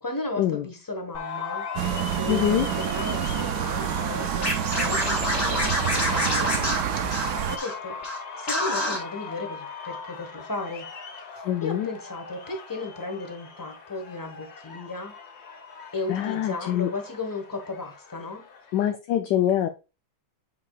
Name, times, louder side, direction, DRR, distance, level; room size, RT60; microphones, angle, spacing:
voice 1, 0.0-1.7 2.1-7.0 7.5-8.0 8.4-10.9 11.3-15.2 15.9-18.5, left 2 dB, 15° left, 0.8 m, -35 dB
sound 1, 1.1-18.9, left 5 dB, 55° left, 1.5 m, -38 dB
sound 2, 1.8-7.6, right 11 dB, 75° right, 0.9 m, -28 dB
voice 2, 2.3-2.7 11.4-11.9 16.1-16.9 18.7-19.7, left 11 dB, 70° left, 1.1 m, -24 dB
Scratching (performance technique), 4.4-7.7 8.0-8.2 8.5-9.0, left 1 dB, 40° left, 2.7 m, -27 dB
8.4 x 4.9 x 2.3 m
omnidirectional pair, 2.2 m